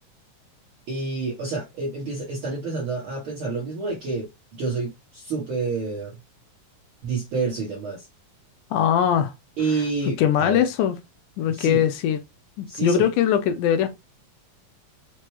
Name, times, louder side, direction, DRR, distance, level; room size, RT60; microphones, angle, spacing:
voice 1, 0.9-4.3 4.6-6.1 7.0-8.1 9.6-10.7 11.5-11.8 12.7-13.1, right 4 dB, 70° right, 1.3 m, -28 dB
voice 2, 8.7-9.3 10.2-11.0 11.4-12.2 12.6-14.0, left 9 dB, 80° left, 2.0 m, -21 dB
5.9 x 2.2 x 3.0 m
omnidirectional pair, 3.8 m